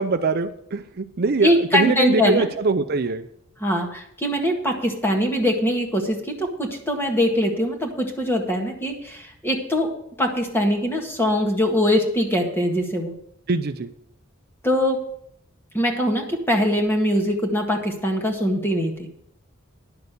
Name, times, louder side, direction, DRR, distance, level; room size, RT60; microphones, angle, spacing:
voice 1, 0.0-3.2 13.5-13.9, right 4 dB, 50° right, 9 dB, 0.6 m, -23 dB
voice 2, 1.4-2.5 3.6-9.9 10.2-13.1 14.6-15.0 15.7-19.1, equal, 10° left, 2 dB, 1.7 m, -22 dB
10.5 x 6.8 x 6.7 m, 0.71 s
head